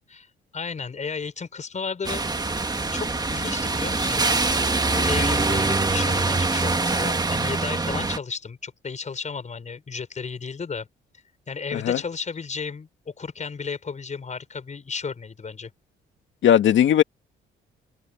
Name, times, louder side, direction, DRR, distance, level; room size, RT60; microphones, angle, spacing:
voice 1, 0.5-2.5 2.9-4.4 4.9-10.9 11.5-15.7, left 5 dB, 35° left, 5.4 m, -33 dB
sound 1, 2.0-8.2, right 3 dB, 20° right, 1.7 m, -24 dB
voice 2, 16.4-17.0, left 10 dB, 70° left, 2.0 m, -18 dB
cardioid pair, 90°, 20 cm